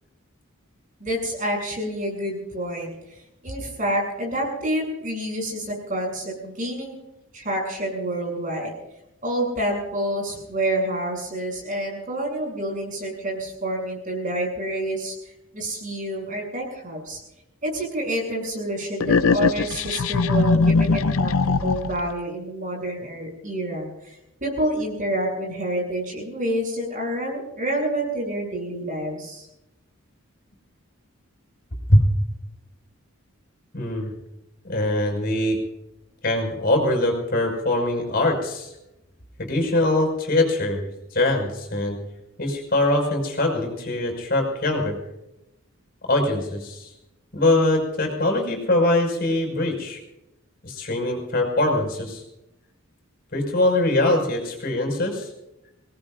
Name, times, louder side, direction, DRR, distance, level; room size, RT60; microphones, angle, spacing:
voice 1, 1.0-2.9 3.4-7.0 7.3-8.7 9.2-15.1 15.5-17.2 17.6-21.3 21.6-29.5, right 1 dB, 40° right, -1 dB, 7.8 m, -28 dB
sound 1, 19.0-22.1, left 4 dB, 85° left, 0.6 m, -20 dB
voice 2, 33.7-34.1 34.6-35.6 36.2-38.7 39.4-40.8 41.1-42.0 42.4-45.0 46.0-46.9 47.3-50.0 50.6-52.2 53.3-55.3, left 1 dB, 50° left, 2 dB, 5.7 m, -22 dB
26.5 x 19.0 x 2.6 m, 0.88 s
head